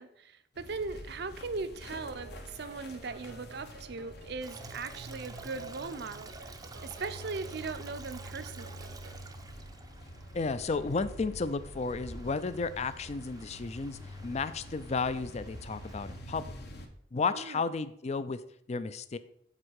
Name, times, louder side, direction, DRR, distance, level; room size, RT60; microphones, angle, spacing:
voice 1, 0.0-8.9 17.3-17.6, right 4 dB, 60° right, 12 dB, 0.6 m, -39 dB
sound 1, 0.5-16.9, equal, 60° left, 1.0 m, -47 dB
sound 2, 1.9-9.3, right 4 dB, 85° right, 1.0 m, -52 dB
Stream, 4.4-16.2, right 3 dB, 20° right, 0.5 m, -51 dB
voice 2, 10.3-16.5 17.1-18.4 18.7-19.2, left 4 dB, 35° left, 14 dB, 0.4 m, -33 dB
7.4 x 4.4 x 6.3 m, 0.70 s
head